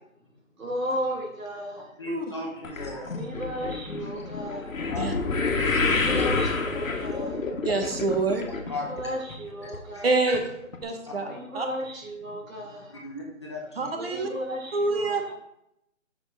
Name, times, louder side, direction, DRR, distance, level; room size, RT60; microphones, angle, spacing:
voice 1, 0.6-1.8 3.1-4.7 5.7-7.3 8.9-10.1 11.2-12.9 13.9-15.3, equal, 90° right, 0 dB, 2.4 m, -34 dB
voice 2, 2.0-3.4 4.5-4.6 4.9-5.2 6.2-6.3 7.1-7.5 8.7-9.2 9.6-10.3 11.2-11.3 13.0-13.9, left 2 dB, 20° left, -3 dB, 0.9 m, -37 dB
sound 1, 2.6-9.0 9.3-9.8 10.3-10.4 10.7-10.8, left 3 dB, 85° left, 1.3 m, -28 dB
voice 3, 7.6-8.4 10.0-10.4 10.8-11.3 11.5-11.7 13.8-14.3 14.7-15.2, right 3 dB, 50° right, 4 dB, 1.1 m, -26 dB
6.2 x 5.2 x 3.8 m, 0.79 s
hypercardioid pair, 175°, 39 cm